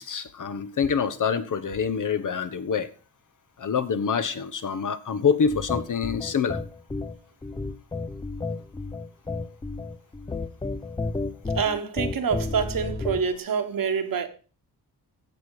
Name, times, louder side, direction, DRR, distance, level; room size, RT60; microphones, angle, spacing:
voice 1, 0.0-2.9 3.6-6.6, left 6 dB, 50° left, 1.1 m, -26 dB
sound 1, 5.5-13.4, left 3 dB, 10° left, 0.6 m, -32 dB
voice 2, 11.5-14.3, right 6 dB, 55° right, 1.5 m, -26 dB
16.0 x 6.2 x 4.9 m
cardioid pair, 115°, 41 cm